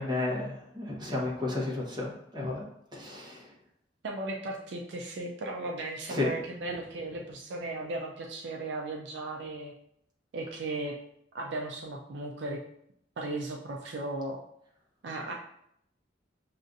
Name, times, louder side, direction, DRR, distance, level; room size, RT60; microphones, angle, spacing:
voice 1, 0.0-2.6 2.9-3.5 6.1-6.3, left 2 dB, 25° right, -4 dB, 1.0 m, -32 dB
voice 2, 4.0-9.7 10.3-11.0 11.3-12.6 13.2-14.4 15.0-15.3, right 2 dB, 65° right, 0 dB, 0.4 m, -36 dB
6.2 x 2.5 x 2.6 m, 0.73 s
head